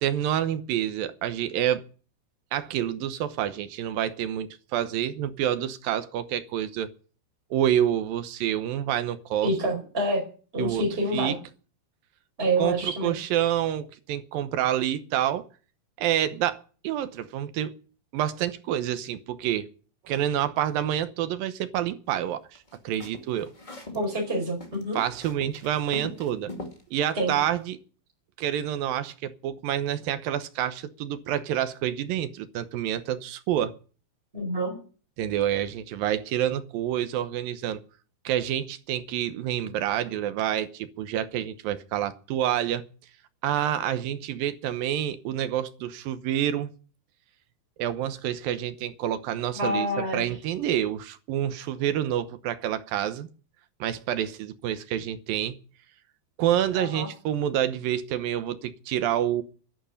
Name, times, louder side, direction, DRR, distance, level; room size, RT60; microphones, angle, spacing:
voice 1, 0.0-1.8 2.5-6.9 7.5-9.8 10.6-10.8 11.1-11.4 12.6-15.5 16.0-17.7 18.1-19.7 20.0-22.6 22.8-23.5 24.9-26.5 26.9-27.8 28.4-33.8 35.2-37.8 38.2-42.8 43.4-46.7 47.8-53.3 53.8-55.6 56.4-59.4, right 11 dB, 70° right, 2.6 m, -28 dB
voice 2, 9.4-10.2 10.5-11.3 12.4-13.1 23.9-25.0 27.2-27.3 34.3-34.7 49.5-50.3 56.7-57.1, right 1 dB, 15° right, 4.9 m, -27 dB
sound 1, 22.5-24.0 24.3-26.8, left 2 dB, 15° left, 1.6 m, -41 dB
11.5 x 11.0 x 8.5 m
omnidirectional pair, 4.5 m